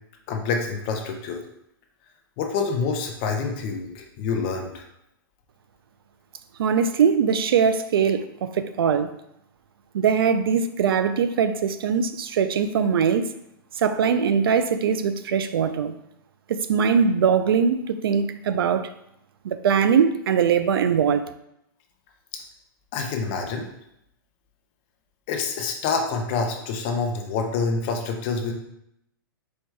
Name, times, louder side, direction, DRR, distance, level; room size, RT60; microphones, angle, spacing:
voice 1, 0.3-1.4 2.4-4.8 22.9-23.7 25.3-28.5, left 4 dB, 30° left, 3 dB, 0.5 m, -27 dB
voice 2, 6.6-9.1 9.9-13.3 13.8-15.9 16.5-18.9 19.4-21.3, right 6 dB, 90° right, 11 dB, 0.4 m, -21 dB
4.4 x 2.3 x 4.6 m, 0.79 s
hypercardioid pair, 170°, 12 cm